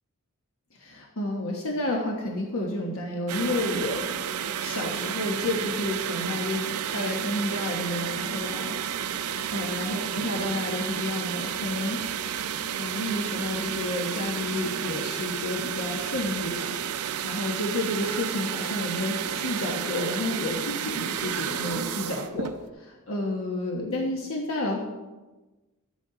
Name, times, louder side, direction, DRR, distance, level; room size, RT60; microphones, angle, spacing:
voice 1, 0.7-4.0 4.6-6.7 6.9-8.8 9.5-12.0 12.8-16.7 17.2-22.5 22.8-24.8, left 1 dB, 65° left, 0 dB, 1.2 m, -30 dB
sound 1, 3.3-22.6, right 8 dB, 80° right, 0.5 m, -31 dB
12.0 x 8.3 x 3.9 m, 1.2 s
head